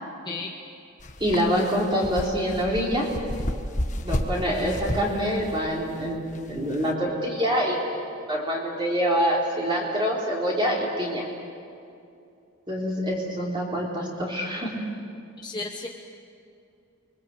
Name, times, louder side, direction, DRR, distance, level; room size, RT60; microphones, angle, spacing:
sound 1, 1.0-6.9, left 1 dB, 35° left, 1.5 m, -32 dB
voice 1, 1.2-3.1 4.0-7.9 8.3-11.3 12.7-14.8, equal, 20° right, -3 dB, 3.6 m, -26 dB
voice 2, 15.4-15.9, left 3 dB, 20° left, 1 dB, 1.1 m, -33 dB
29.5 x 22.0 x 7.9 m, 2.5 s
head